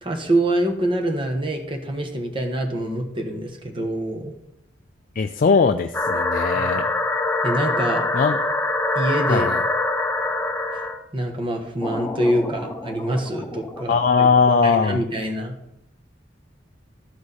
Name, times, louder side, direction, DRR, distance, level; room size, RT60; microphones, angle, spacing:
voice 1, 0.0-4.3 6.5-6.8 7.4-8.0 8.9-9.5 11.1-14.3 14.6-15.5, right 1 dB, 25° right, 3 dB, 1.2 m, -25 dB
voice 2, 5.2-6.8 8.1-8.5 9.3-9.6 13.9-15.0, left 5 dB, 45° left, 7 dB, 0.4 m, -19 dB
sound 1, 5.9-11.0 11.8-14.2, left 2 dB, 10° left, 0.7 m, -25 dB
13.5 x 4.8 x 4.1 m, 0.83 s
head